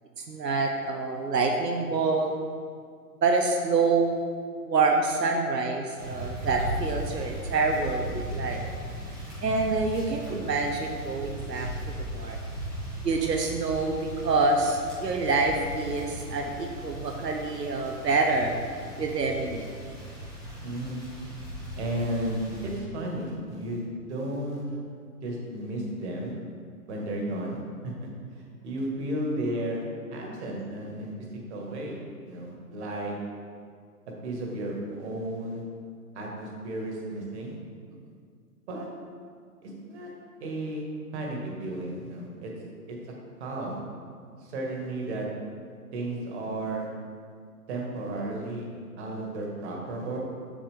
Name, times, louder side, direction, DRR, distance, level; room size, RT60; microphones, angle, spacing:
voice 1, 0.3-2.3 3.2-4.2 4.6-8.6 9.4-11.7 12.1-12.4 13.0-18.6 19.0-19.7, right 3 dB, 90° right, 2 dB, 0.9 m, -26 dB
sound 1, 6.0-22.8, right 1 dB, 5° right, 0.5 m, -37 dB
voice 2, 20.6-21.0 21.8-24.6 25.2-26.3 26.9-29.8 30.1-31.1 31.5-32.0 32.2-33.1 34.2-35.6 36.1-37.6 38.7-38.9 39.6-40.1 40.4-40.8 41.1-42.5 42.9-43.0 43.4-43.8 44.4-45.3 45.9-46.9 47.7-48.7 49.0-50.2, right 1 dB, 45° right, -1 dB, 1.8 m, -33 dB
7.1 x 6.8 x 3.6 m, 2.1 s
hypercardioid pair, 130°, 47 cm